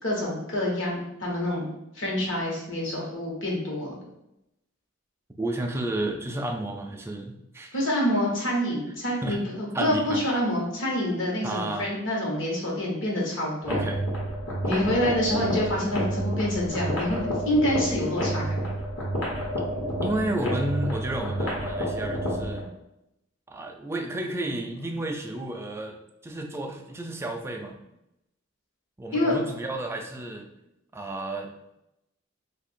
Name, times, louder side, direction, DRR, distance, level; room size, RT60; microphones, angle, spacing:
voice 1, 0.0-3.9 7.7-13.8 14.7-17.2 17.4-18.7 29.1-29.3, left 1 dB, 65° left, -3 dB, 1.1 m, -27 dB
voice 2, 5.4-7.8 9.2-9.4 9.7-10.2 11.4-11.9 13.7-14.0 14.7-14.8 20.0-22.6 23.5-26.0 26.2-27.8 29.0-30.5 30.9-31.5, right 1 dB, 10° right, 3 dB, 0.3 m, -31 dB
sound 1, 13.6-22.6, equal, 85° left, 1.3 m, -29 dB
2.7 x 2.5 x 4.2 m, 0.85 s
head